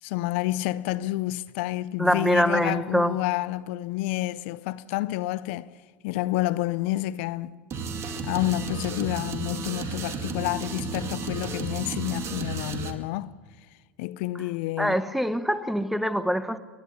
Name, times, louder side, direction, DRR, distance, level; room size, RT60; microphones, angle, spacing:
voice 1, 0.0-5.7 6.0-7.6 8.2-13.3 14.0-15.0, left 16 dB, 65° left, 0.6 m, -29 dB
voice 2, 2.0-3.2 14.8-16.6, equal, ahead, 1.2 m, -24 dB
sound 1, 7.7-12.9, right 5 dB, 40° right, 2.1 m, -33 dB
30.0 x 11.0 x 8.5 m
hypercardioid pair, 85°, 7 cm